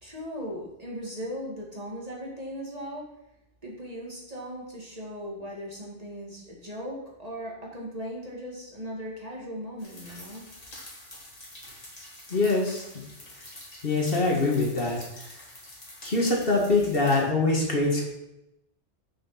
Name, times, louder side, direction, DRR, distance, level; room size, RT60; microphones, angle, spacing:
voice 1, 0.0-3.1 3.6-10.5, equal, 35° right, -3 dB, 2.0 m, -38 dB
sound 1, 9.8-17.2, left 1 dB, 35° left, 2.1 m, -46 dB
voice 2, 12.3-12.8 13.8-15.0 16.0-18.1, left 2 dB, 55° left, -2 dB, 2.0 m, -24 dB
6.8 x 6.1 x 5.6 m, 0.88 s
omnidirectional pair, 1.2 m